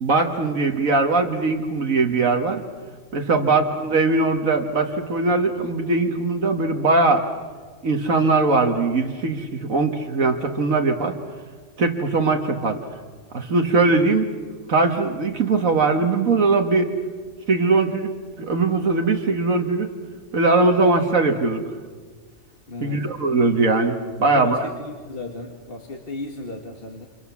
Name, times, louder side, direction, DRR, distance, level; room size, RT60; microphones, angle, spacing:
voice 1, 0.0-2.6 3.1-7.2 7.8-11.2 11.8-12.8 13.3-14.3 14.7-16.9 17.5-19.9 20.3-21.6 22.8-24.7, right 3 dB, 70° right, 3 dB, 1.9 m, -20 dB
voice 2, 22.7-23.1 24.2-27.1, left 2 dB, 45° left, 1 dB, 2.2 m, -35 dB
29.5 x 27.5 x 7.2 m, 1.5 s
omnidirectional pair, 1.4 m